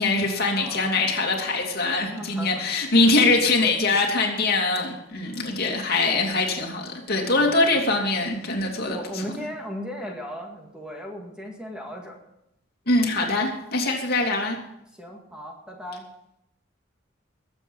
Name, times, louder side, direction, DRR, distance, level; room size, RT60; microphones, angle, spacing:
voice 1, 0.0-9.2 12.9-14.6, left 3 dB, 55° left, 0 dB, 2.9 m, -23 dB
voice 2, 0.5-1.0 2.1-2.6 7.4-7.8 8.8-12.2 15.0-16.1, equal, 5° right, 0 dB, 2.1 m, -37 dB
21.0 x 8.0 x 5.5 m, 0.81 s
head